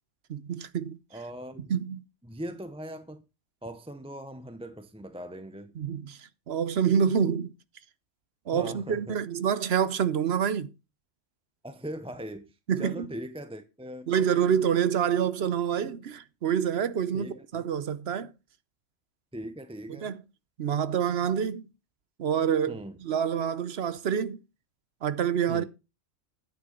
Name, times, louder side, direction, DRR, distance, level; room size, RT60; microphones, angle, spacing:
voice 1, 0.3-1.0 1.7-2.0 5.8-7.5 8.5-10.7 12.7-13.1 14.1-18.3 20.0-20.2 20.6-21.6 22.2-24.4 25.0-25.6, right 8 dB, 60° right, 1.0 m, -27 dB
voice 2, 1.1-1.7 2.2-3.2 3.6-5.7 8.5-9.2 11.6-12.5 12.8-14.1 17.1-17.6 19.3-20.1 22.7-22.9 25.5-25.6, equal, 5° right, 0.5 m, -40 dB
9.6 x 9.6 x 3.8 m
omnidirectional pair, 1.3 m